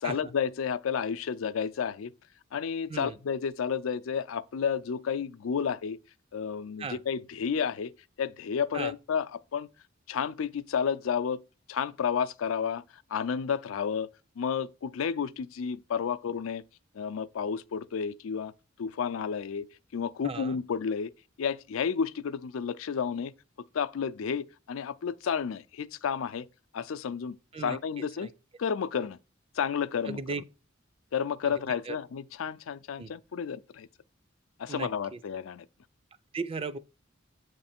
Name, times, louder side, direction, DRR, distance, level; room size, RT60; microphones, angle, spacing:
voice 1, 0.0-2.1 2.5-6.0 6.3-7.9 8.2-9.7 10.1-11.4 11.7-12.8 13.1-14.1 14.4-16.6 16.9-18.5 18.8-19.7 19.9-21.1 21.4-23.3 23.7-26.5 26.7-28.3 28.6-29.2 29.6-30.4 31.1-33.9 34.6-35.6, left 7 dB, 90° left, 0.4 m, -31 dB
voice 2, 20.2-20.6 27.5-27.8 28.2-28.3 30.1-30.4 31.4-32.0 33.0-33.1 34.7-34.9 36.3-36.8, right 4 dB, 30° right, 0.4 m, -36 dB
7.4 x 3.3 x 4.2 m
head